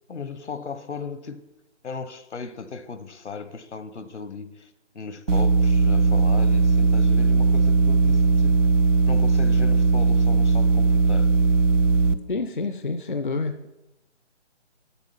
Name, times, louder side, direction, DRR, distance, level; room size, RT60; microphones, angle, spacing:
voice 1, 0.1-1.5 1.8-8.6 9.1-11.3, left 4 dB, 70° left, 0.9 m, -36 dB
sound 1, 5.3-12.1, right 4 dB, 90° right, 0.7 m, -19 dB
voice 2, 12.3-13.6, left 3 dB, 45° left, 0.4 m, -28 dB
8.3 x 5.8 x 6.9 m
hypercardioid pair, 175°, 36 cm